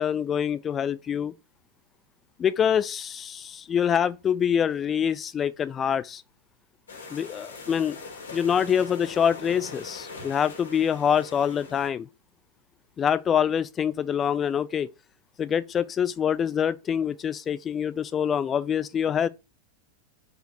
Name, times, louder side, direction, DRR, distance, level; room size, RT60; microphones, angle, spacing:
voice 1, 0.0-1.3 2.4-6.2 7.1-8.0 8.3-12.1 13.0-14.9 15.4-19.3, left 8 dB, 25° left, 0.6 m, -25 dB
sound 1, 6.9-11.9, left 4 dB, 65° left, 2.8 m, -42 dB
5.1 x 4.9 x 4.5 m
figure-of-eight pair, 90°, 0 cm